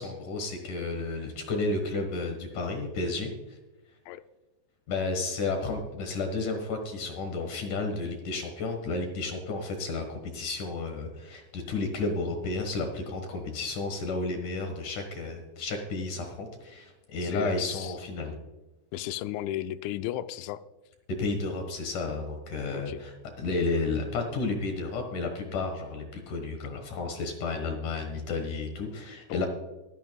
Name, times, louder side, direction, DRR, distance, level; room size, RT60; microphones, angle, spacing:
voice 1, 0.0-3.6 4.9-18.3 21.2-29.5, left 3 dB, 60° left, 2.2 m, -32 dB
voice 2, 17.2-17.9 18.9-20.6 22.7-23.0 29.3-29.5, left 12 dB, 85° left, 2.9 m, -34 dB
22.5 x 9.4 x 2.3 m
omnidirectional pair, 5.4 m